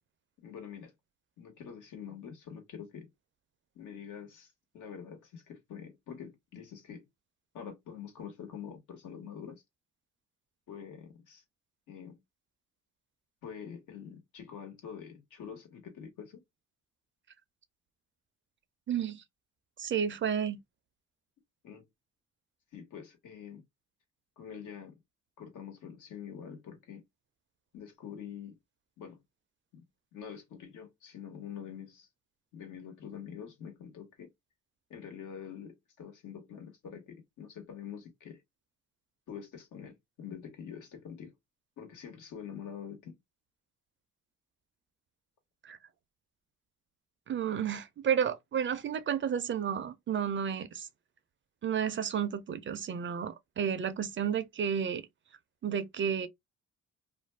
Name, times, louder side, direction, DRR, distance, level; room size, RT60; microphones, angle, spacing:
voice 1, 0.4-0.9 1.4-3.1 3.7-7.1 7.5-9.6 10.7-11.4 11.9-12.2 13.4-16.4 21.6-21.9 22.7-23.6 24.4-25.0 25.4-27.0 27.7-28.6 29.0-29.2 29.7-29.8 30.1-32.1 32.5-34.3 34.9-38.4 39.3-41.3 41.8-43.2, left 8 dB, 75° left, 1.3 m, -45 dB
voice 2, 18.9-19.2 19.8-20.6 45.6-45.8 47.3-50.9 51.6-55.1 55.6-56.3, right 8 dB, 40° right, 0.5 m, -31 dB
2.5 x 2.2 x 3.2 m
cardioid pair, 90°, 30 cm